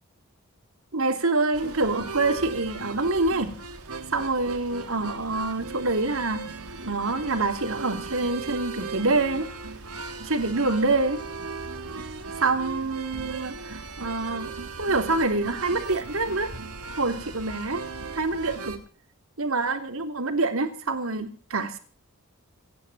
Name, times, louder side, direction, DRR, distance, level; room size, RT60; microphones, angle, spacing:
voice 1, 0.9-3.5 4.1-6.4 6.8-9.5 10.2-11.2 12.4-14.5 14.8-16.5 17.0-17.8 18.1-18.7 19.4-21.8, right 3 dB, 65° right, 7 dB, 3.3 m, -26 dB
sound 1, 1.5-18.8, right 4 dB, 85° right, 3.4 m, -38 dB
28.0 x 11.0 x 4.3 m, 0.42 s
head